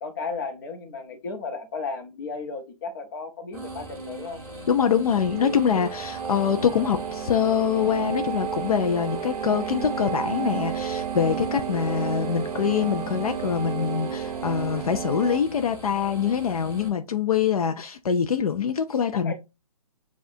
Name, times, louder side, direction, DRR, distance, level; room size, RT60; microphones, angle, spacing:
voice 1, 0.0-4.4 19.1-19.3, left 4 dB, 35° left, 0.9 m, -34 dB
sound 1, 3.5-16.9, right 1 dB, 10° right, 1.8 m, -40 dB
voice 2, 4.7-19.3, left 7 dB, 70° left, 0.5 m, -24 dB
sound 2, 5.2-15.4, right 8 dB, 85° right, 0.5 m, -32 dB
7.0 x 2.4 x 2.7 m
hypercardioid pair, 165°, 19 cm